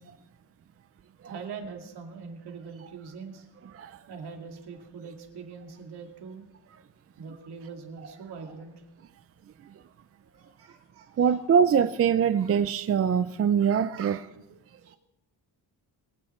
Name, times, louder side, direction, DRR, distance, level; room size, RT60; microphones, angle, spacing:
voice 1, 1.2-3.5 4.1-6.4 7.2-8.8 10.3-11.4 12.4-12.6 13.9-14.1 14.8-15.0, right 5 dB, 75° right, 2.5 m, -43 dB
voice 2, 11.2-14.2, right 7 dB, 35° right, 0.4 m, -23 dB
24.0 x 9.8 x 4.4 m
wide cardioid pair, 170°, 39 cm